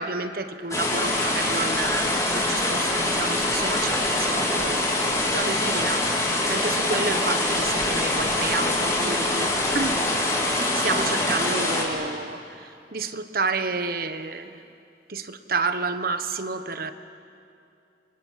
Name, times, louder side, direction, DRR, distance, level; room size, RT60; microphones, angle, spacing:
voice 1, 0.0-4.9 5.3-10.1 10.7-14.6 15.1-16.9, right 3 dB, 55° right, 9 dB, 1.3 m, -30 dB
sound 1, 0.7-11.8, left 1 dB, 20° left, 3.9 m, -24 dB
28.5 x 26.0 x 7.6 m, 2.5 s
head